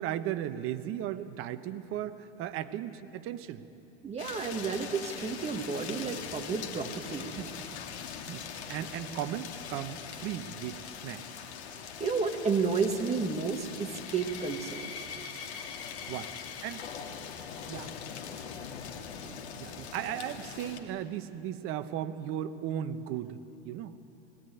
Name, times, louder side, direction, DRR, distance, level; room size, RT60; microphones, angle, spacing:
voice 1, 0.0-3.6 7.4-7.8 8.2-11.2 16.1-16.3 16.6-16.9 17.7-17.9 19.2-23.4 23.6-24.0, right 11 dB, 40° right, 11 dB, 1.1 m, -36 dB
voice 2, 4.0-7.3 12.0-14.9, right 5 dB, 20° right, 4 dB, 2.0 m, -31 dB
sound 1, 4.2-20.8, left 7 dB, 70° left, 2.5 m, -42 dB
sound 2, 13.5-18.8, left 6 dB, 45° left, 2.7 m, -46 dB
21.0 x 17.5 x 9.3 m, 2.9 s
hypercardioid pair, 120°, 34 cm